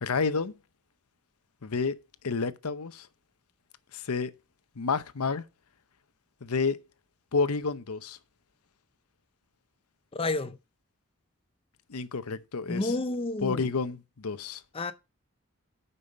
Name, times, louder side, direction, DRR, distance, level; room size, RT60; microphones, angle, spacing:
voice 1, 0.0-0.5 1.6-1.9 2.2-3.1 3.9-4.3 4.8-5.4 6.4-6.8 7.3-8.2 11.9-13.0 13.4-14.6, left 4 dB, 90° left, 0.7 m, -29 dB
voice 2, 10.1-10.6 12.7-13.7 14.7-14.9, left 2 dB, 25° left, 0.5 m, -30 dB
8.6 x 5.5 x 5.3 m
head